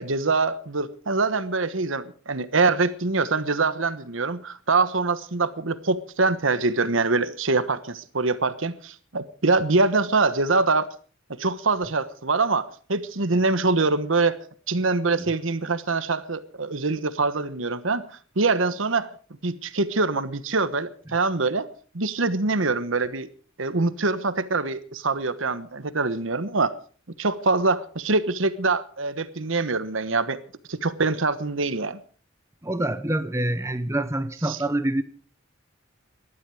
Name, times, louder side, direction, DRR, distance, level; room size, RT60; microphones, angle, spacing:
voice 1, 0.0-10.9 11.4-14.4 14.7-19.1 19.4-21.7 21.9-23.3 23.6-26.7 27.2-30.4 30.7-32.0 34.4-34.6, right 3 dB, 80° right, 1.2 m, -24 dB
voice 2, 32.6-35.0, right 1 dB, 15° right, 0.9 m, -26 dB
19.5 x 12.5 x 4.9 m
head